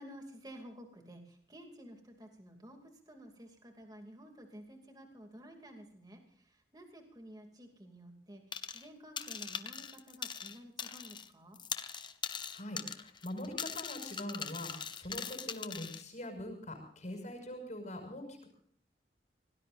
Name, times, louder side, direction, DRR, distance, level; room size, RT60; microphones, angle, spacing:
voice 1, 0.0-11.6, equal, 25° right, 3 dB, 2.6 m, -52 dB
sound 1, 8.5-8.9 9.2-11.3 11.5-16.0, left 6 dB, 25° left, 1.0 m, -41 dB
voice 2, 12.5-18.5, left 1 dB, 45° left, 5 dB, 5.9 m, -43 dB
26.0 x 18.5 x 2.6 m, 0.63 s
head